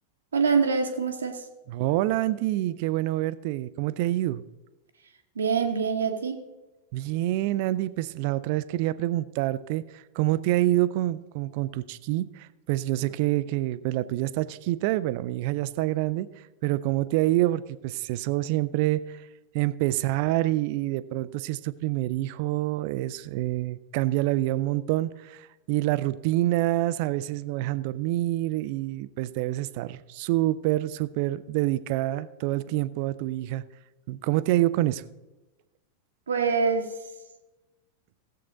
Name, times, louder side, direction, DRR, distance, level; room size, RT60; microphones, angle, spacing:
voice 1, 0.3-1.5 5.4-6.4 36.3-36.9, right 5 dB, 70° right, 5 dB, 1.0 m, -25 dB
voice 2, 1.7-4.4 6.9-16.3 16.6-19.0 19.5-33.6 34.1-35.0, right 16 dB, 45° right, 16 dB, 0.5 m, -27 dB
17.0 x 7.8 x 3.8 m, 1.1 s
figure-of-eight pair, 90°, 0 cm